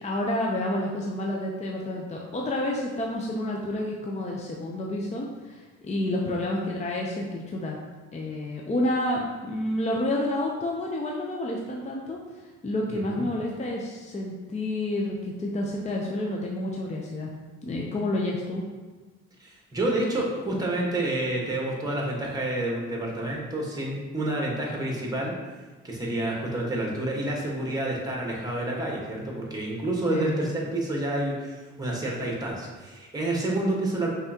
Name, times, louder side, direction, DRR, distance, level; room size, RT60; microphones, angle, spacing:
voice 1, 0.0-7.8 8.1-17.3 17.6-18.6 30.1-30.5, left 1 dB, 25° left, -1 dB, 0.6 m, -29 dB
voice 2, 12.9-13.2 19.4-25.5 25.8-34.1, right 1 dB, 10° right, -2 dB, 1.3 m, -29 dB
5.4 x 3.6 x 2.8 m, 1.3 s
cardioid pair, 90°, 30 cm